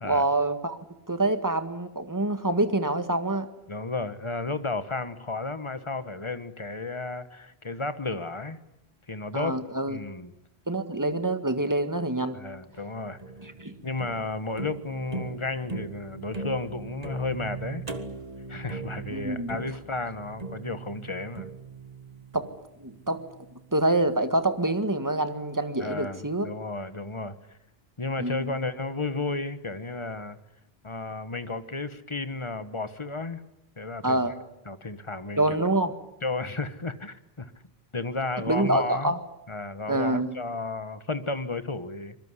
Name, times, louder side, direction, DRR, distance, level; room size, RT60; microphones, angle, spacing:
voice 1, 0.0-0.8 1.1-3.5 9.3-10.0 10.7-12.4 13.4-13.7 19.1-19.7 22.3-22.5 22.8-23.2 23.7-26.5 28.2-28.6 34.0-34.3 35.4-35.9 38.5-39.2 39.9-40.3, right 2 dB, 20° right, 9 dB, 1.8 m, -26 dB
voice 2, 3.7-8.6 9.1-9.5 9.9-10.3 12.3-13.2 13.8-17.8 18.5-21.5 25.8-27.4 28.0-30.4 30.8-33.4 33.8-34.2 34.6-35.4 36.2-37.5 37.9-39.1 39.5-42.2, left 3 dB, 30° left, 12 dB, 1.5 m, -33 dB
sound 1, 12.8-24.0, right 3 dB, 40° right, 1.8 m, -40 dB
25.0 x 22.0 x 9.8 m, 0.86 s
omnidirectional pair, 1.0 m